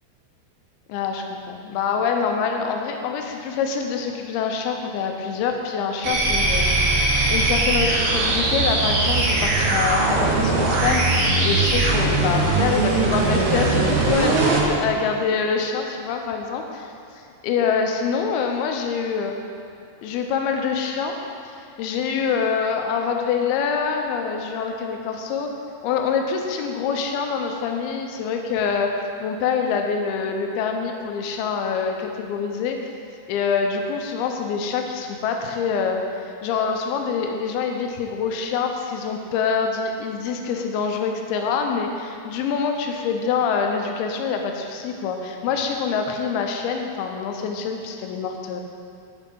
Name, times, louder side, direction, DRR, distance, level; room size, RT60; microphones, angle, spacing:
voice 1, 0.9-19.4 20.0-21.2 21.8-25.5 25.8-28.9 29.2-32.8 33.3-36.0 36.4-48.6, left 6 dB, 80° left, 3 dB, 2.6 m, -25 dB
sound 1, 6.0-14.7, right 2 dB, 65° right, 2.8 m, -20 dB
12.5 x 4.7 x 5.3 m, 2.5 s
omnidirectional pair, 4.5 m